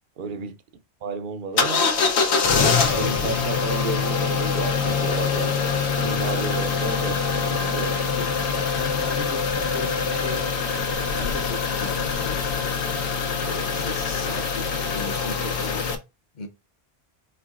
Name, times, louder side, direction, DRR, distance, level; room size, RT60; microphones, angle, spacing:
voice 1, 0.2-0.6 1.0-1.9 2.5-5.5 6.0-8.2, right 4 dB, 55° right, 0.7 m, -32 dB
sound 1, 1.6-15.9, left 5 dB, 90° left, 1.0 m, -24 dB
voice 2, 8.1-10.4 11.1-12.5 13.4-15.9 16.3-16.5, left 4 dB, 50° left, 0.7 m, -36 dB
4.6 x 4.5 x 2.4 m
omnidirectional pair, 1.1 m